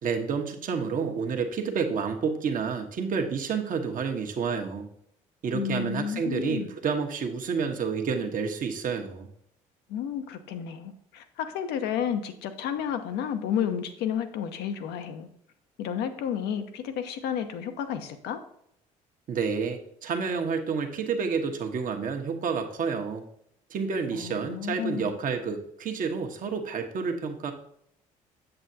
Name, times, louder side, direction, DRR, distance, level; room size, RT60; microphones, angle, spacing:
voice 1, 0.0-4.9 5.4-9.3 19.3-23.3 23.7-27.5, right 5 dB, 50° right, 4 dB, 1.2 m, -29 dB
voice 2, 5.5-6.7 9.9-15.3 15.8-18.4 24.1-25.1, left 8 dB, 65° left, 8 dB, 0.9 m, -31 dB
7.9 x 7.4 x 2.8 m, 0.71 s
hypercardioid pair, 55°, 18 cm